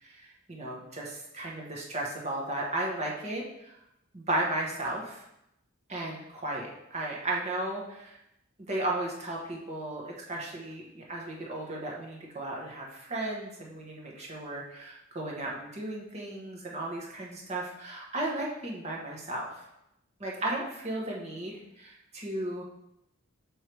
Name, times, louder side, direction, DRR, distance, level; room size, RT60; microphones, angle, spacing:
voice 1, 0.0-3.7 4.1-5.2 5.9-8.2 8.6-19.7 20.2-22.6, right 1 dB, 35° right, -2 dB, 1.1 m, -35 dB
6.6 x 3.3 x 4.5 m, 0.83 s
head